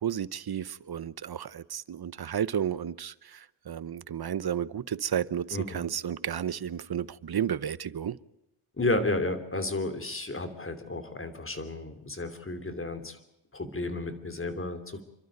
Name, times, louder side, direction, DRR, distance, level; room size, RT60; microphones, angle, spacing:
voice 1, 0.0-8.2, right 9 dB, 50° right, 0.8 m, -32 dB
voice 2, 8.8-13.2 13.5-15.0, left 2 dB, 25° left, 3.1 m, -32 dB
28.5 x 12.5 x 9.3 m
wide cardioid pair, 100°, 48 cm